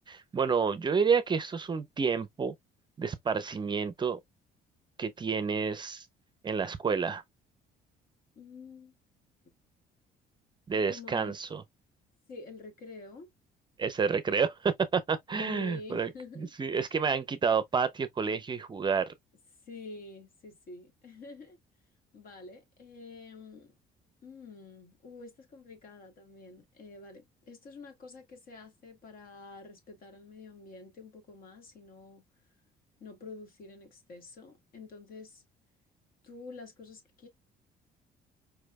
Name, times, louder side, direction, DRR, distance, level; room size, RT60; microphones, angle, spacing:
voice 1, 0.1-2.5 3.0-4.2 5.0-6.1 6.4-7.2 10.7-11.6 13.8-16.1 16.4-19.1, right 5 dB, 25° right, 0.5 m, -29 dB
voice 2, 8.4-8.9 10.9-11.4 12.3-13.3 15.4-16.5 19.7-21.6 22.1-23.7 24.2-32.2 33.0-35.4 36.2-37.3, left 3 dB, 60° left, 1.8 m, -48 dB
4.7 x 3.1 x 2.2 m
cardioid pair, 110°, 17 cm